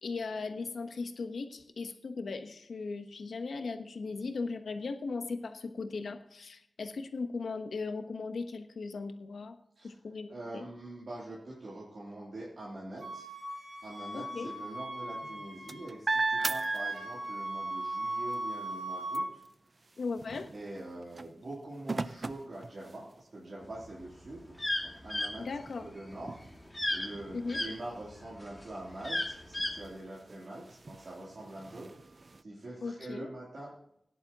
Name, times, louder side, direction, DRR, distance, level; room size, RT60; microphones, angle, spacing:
voice 1, 0.0-9.6 9.8-10.6 14.1-14.5 20.0-20.5 25.4-25.9 27.3-27.6 32.8-33.3, left 4 dB, 85° left, 7 dB, 1.1 m, -38 dB
voice 2, 10.3-13.3 13.8-19.9 20.5-26.4 26.9-33.7, right 1 dB, 60° right, -7 dB, 3.2 m, -44 dB
Wind instrument woodwind instrument, 13.0-15.9 16.2-19.2, right 1 dB, 80° right, 4.5 m, -38 dB
sound 1, 15.1-17.5 17.9-23.4 24.0-24.1 24.4-32.4, right 3 dB, 45° right, 0.5 m, -40 dB
sound 2, 23.8-27.7 28.2-29.8, left 1 dB, 15° left, 2.1 m, -33 dB
16.5 x 10.5 x 3.0 m, 0.75 s
wide cardioid pair, 100°, 0 cm